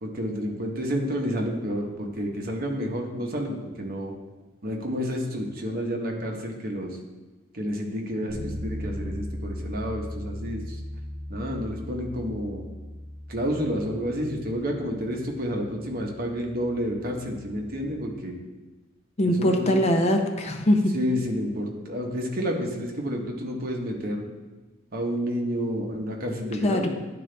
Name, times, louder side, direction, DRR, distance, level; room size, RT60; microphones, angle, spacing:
voice 1, 0.0-4.1 4.6-7.0 7.5-10.8 11.3-12.6 13.3-18.3 19.2-19.8 20.9-24.2 24.9-26.9, equal, 50° right, 1 dB, 1.0 m, -30 dB
Bass guitar, 8.3-18.1, left 1 dB, 25° right, 1.5 m, -38 dB
voice 2, 19.2-20.9 26.6-26.9, left 1 dB, 35° left, 4 dB, 0.6 m, -22 dB
11.0 x 3.9 x 3.3 m, 1.2 s
head